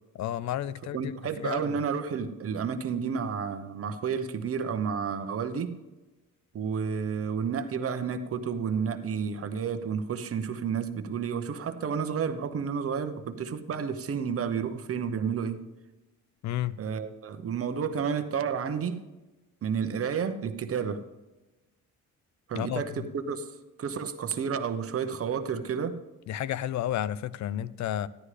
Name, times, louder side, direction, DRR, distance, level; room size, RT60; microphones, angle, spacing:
voice 1, 0.1-1.8 16.4-16.8 22.5-23.1 26.3-28.1, left 11 dB, 65° left, 0.5 m, -32 dB
voice 2, 0.9-5.7 6.5-15.6 16.8-19.0 19.6-21.0 22.5-23.5 23.8-26.0, right 6 dB, 50° right, 0.9 m, -31 dB
13.5 x 11.0 x 3.3 m
cardioid pair, 90°, 30 cm